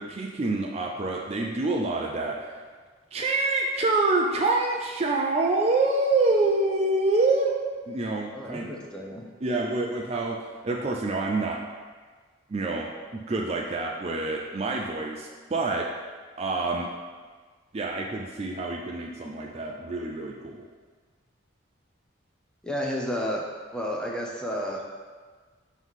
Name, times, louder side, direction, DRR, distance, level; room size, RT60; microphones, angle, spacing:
voice 1, 0.0-2.6 3.1-7.5 7.9-8.7 9.4-10.4 10.6-11.6 12.5-15.9 16.4-16.9 17.7-20.7, right 2 dB, 30° right, -1 dB, 0.4 m, -26 dB
voice 2, 8.3-9.3 22.6-23.4 23.7-24.8, equal, 5° left, -2 dB, 0.7 m, -31 dB
5.4 x 3.1 x 5.6 m, 1.5 s
head